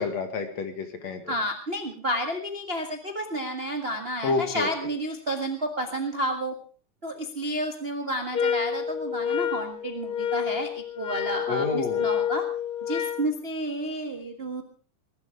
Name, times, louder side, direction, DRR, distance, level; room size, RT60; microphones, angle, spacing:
voice 1, 0.0-1.3 4.2-4.7 11.5-12.0, left 4 dB, 55° left, 7 dB, 2.7 m, -29 dB
voice 2, 1.3-6.5 7.0-12.5 12.8-14.6, right 1 dB, 40° right, 4 dB, 0.8 m, -31 dB
sound 1, 8.3-13.3, left 8 dB, 40° left, 1.4 m, -29 dB
20.5 x 12.0 x 5.0 m, 0.41 s
omnidirectional pair, 3.9 m